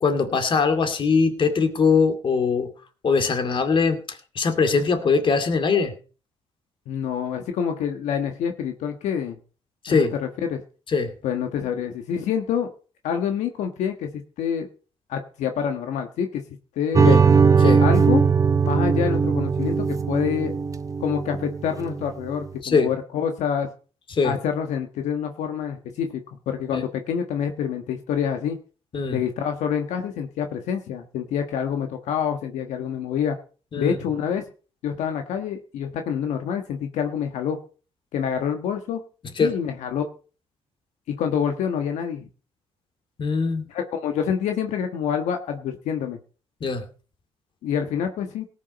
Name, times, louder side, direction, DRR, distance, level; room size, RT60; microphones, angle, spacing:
voice 1, 0.0-2.7 3.0-5.9 9.8-10.1 10.9-11.1 17.1-17.2 17.6-17.8 22.6-22.9 24.1-24.3 26.7-26.8 28.9-29.2 33.7-34.0 39.4-39.5 43.2-43.6 46.6-46.8, left 5 dB, 45° left, 8 dB, 2.4 m, -21 dB
voice 2, 6.9-9.4 9.9-10.6 11.2-12.7 13.0-14.7 15.1-16.4 16.7-17.2 17.8-18.2 18.6-20.5 21.0-23.7 24.2-26.2 26.5-28.6 29.1-33.4 33.8-34.4 34.8-37.6 38.1-39.0 39.4-40.0 41.1-42.2 43.7-46.2 47.6-48.5, left 8 dB, 80° left, 5 dB, 1.5 m, -27 dB
sound 1, 16.9-22.1, right 5 dB, 30° right, 0.8 m, -19 dB
17.5 x 7.4 x 5.3 m, 0.38 s
cardioid pair, 95°, 12 cm